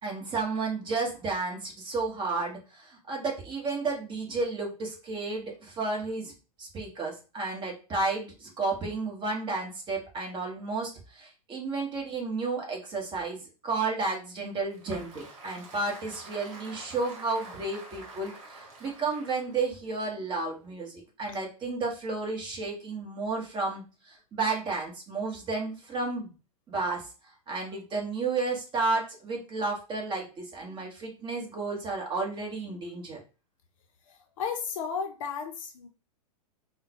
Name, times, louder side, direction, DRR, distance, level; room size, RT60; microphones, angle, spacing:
voice 1, 0.0-6.3 6.6-13.4 13.6-26.3 26.7-27.1 27.5-33.2, right 3 dB, 25° right, 0 dB, 1.2 m, -32 dB
Applause, 14.4-20.7, right 2 dB, 50° right, 1.3 m, -48 dB
voice 2, 34.1-35.9, left 6 dB, 55° left, 5 dB, 0.6 m, -34 dB
3.7 x 2.2 x 2.9 m, 0.33 s
hypercardioid pair, 110°, 20 cm